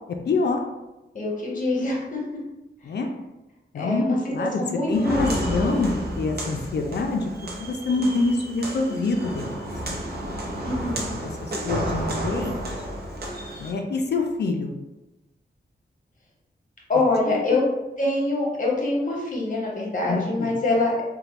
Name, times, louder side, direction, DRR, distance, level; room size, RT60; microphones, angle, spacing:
voice 1, 0.3-0.6 2.8-3.1 3.7-4.6 4.9-9.7 11.2-12.6 13.6-14.8 17.2-17.6 20.1-20.5, left 3 dB, 65° left, 3 dB, 0.4 m, -26 dB
voice 2, 1.1-2.4 3.7-4.2 4.6-5.6 10.6-11.1 16.9-17.6 18.0-21.0, left 2 dB, 45° left, -3 dB, 0.9 m, -25 dB
Walk footsteps, 4.9-13.7, right 1 dB, 60° right, 0.6 m, -31 dB
3.0 x 2.1 x 2.9 m, 1.0 s
wide cardioid pair, 115°, 19 cm